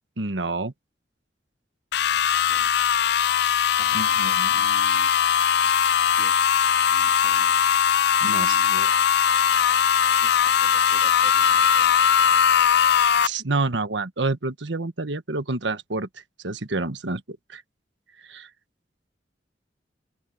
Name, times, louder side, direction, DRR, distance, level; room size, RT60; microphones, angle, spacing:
voice 1, 0.2-0.7 3.9-4.6 8.2-8.9 13.2-16.1 16.4-17.6 18.3-18.5, right 3 dB, 85° right, 1.4 m, -28 dB
sound 1, 1.9-13.3, left 8 dB, 65° left, 0.4 m, -20 dB
voice 2, 2.1-2.7 3.8-5.1 5.6-5.8 6.2-6.4 6.9-7.5 8.2-8.8 10.2-12.7, left 1 dB, 35° left, 2.8 m, -48 dB
open air
head